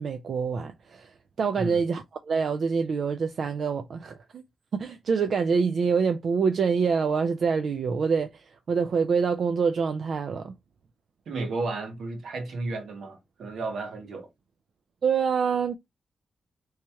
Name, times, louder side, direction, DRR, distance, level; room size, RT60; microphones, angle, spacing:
voice 1, 0.0-4.4 4.7-10.5 15.0-15.8, right 5 dB, 65° right, 0.4 m, -26 dB
voice 2, 11.3-14.3, right 3 dB, 85° right, 1.1 m, -33 dB
3.1 x 2.8 x 3.4 m
wide cardioid pair, 125°, 0 cm